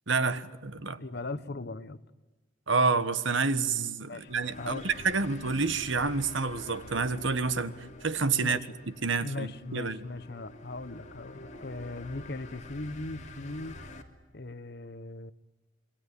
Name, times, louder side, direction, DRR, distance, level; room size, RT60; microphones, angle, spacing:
voice 1, 0.1-1.0 2.7-7.7 8.0-8.6 9.0-10.0, right 4 dB, 65° right, 13 dB, 1.5 m, -28 dB
voice 2, 1.0-2.0 4.1-4.3 4.6-4.9 8.4-8.7 9.2-13.8 14.3-15.3, left 2 dB, 50° left, 14 dB, 1.0 m, -39 dB
sound 1, 4.2-14.0, left 1 dB, 35° left, 2.9 m, -47 dB
27.0 x 24.0 x 8.4 m, 1.2 s
head